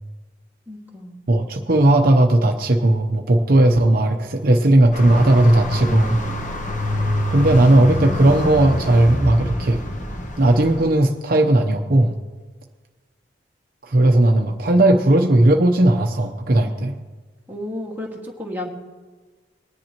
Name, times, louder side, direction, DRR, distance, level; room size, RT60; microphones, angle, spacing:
voice 1, 0.7-1.2 17.5-18.7, left 1 dB, 10° right, -3 dB, 1.8 m, -32 dB
voice 2, 1.3-6.2 7.3-9.8 10.4-12.1 13.9-16.9, right 1 dB, 55° right, 3 dB, 0.8 m, -16 dB
sound 1, 4.9-10.8, equal, 45° left, 1.3 m, -25 dB
20.5 x 10.5 x 3.0 m, 1.3 s
head